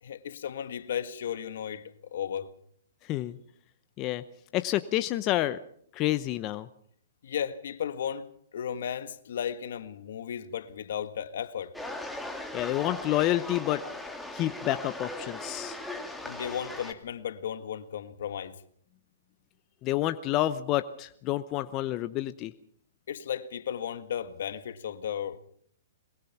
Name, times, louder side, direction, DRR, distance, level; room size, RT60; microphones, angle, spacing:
voice 1, 0.0-2.5 7.2-11.7 16.2-18.6 23.1-25.4, left 8 dB, 70° left, 1.7 m, -35 dB
voice 2, 4.5-5.6 5.9-6.7 12.5-13.8 14.3-15.8 19.8-22.5, left 14 dB, 30° left, 0.8 m, -29 dB
sound 1, 11.7-16.9, left 1 dB, 5° left, 2.2 m, -39 dB
22.5 x 20.5 x 6.0 m
hypercardioid pair, 140°, 0 cm